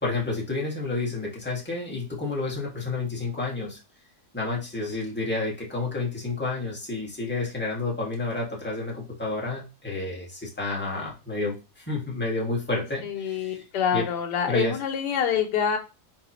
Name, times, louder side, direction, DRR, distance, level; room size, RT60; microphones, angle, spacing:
voice 1, 0.0-3.8 4.3-13.6 13.9-14.0 14.5-14.7, left 3 dB, 5° left, -4 dB, 1.5 m, -30 dB
voice 2, 13.0-15.8, left 8 dB, 85° left, 3 dB, 1.3 m, -26 dB
4.3 x 3.9 x 2.9 m, 0.30 s
omnidirectional pair, 1.8 m